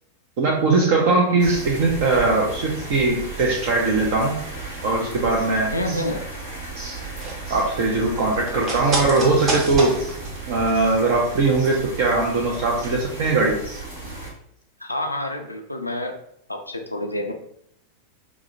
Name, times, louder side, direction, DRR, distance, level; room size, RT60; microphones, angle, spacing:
voice 1, 0.4-4.4 4.8-6.0 6.8-7.0 7.5-10.1 10.5-13.8, right 3 dB, 50° right, -1 dB, 0.5 m, -20 dB
sound 1, 1.4-14.3, right 3 dB, 65° right, 1.3 m, -35 dB
voice 2, 5.7-6.3 14.8-16.2 16.5-17.3, left 1 dB, 85° left, 4 dB, 0.4 m, -28 dB
sound 2, 6.9-11.6 11.8-11.9, right 2 dB, 35° right, 0.9 m, -30 dB
4.7 x 2.0 x 2.5 m, 0.73 s
figure-of-eight pair, 90°, 0 cm